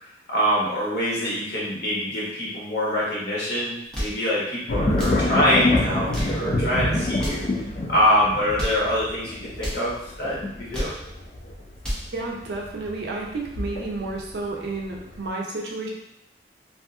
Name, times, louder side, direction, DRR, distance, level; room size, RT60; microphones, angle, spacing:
voice 1, 0.3-7.4 7.9-10.9, equal, 60° left, -7 dB, 1.1 m, -24 dB
sound 1, 3.7-4.2 4.9-5.2 5.9-6.4 7.1-7.5 8.4-8.9 9.5-9.9 10.5-11.0 11.6-12.1, equal, 5° left, 0.7 m, -31 dB
sound 2, 4.7-14.3 14.7-15.3, left 2 dB, 40° left, 0.4 m, -26 dB
voice 2, 12.1-15.9, right 3 dB, 65° right, -1 dB, 0.5 m, -31 dB
2.7 x 2.4 x 2.4 m, 0.79 s
head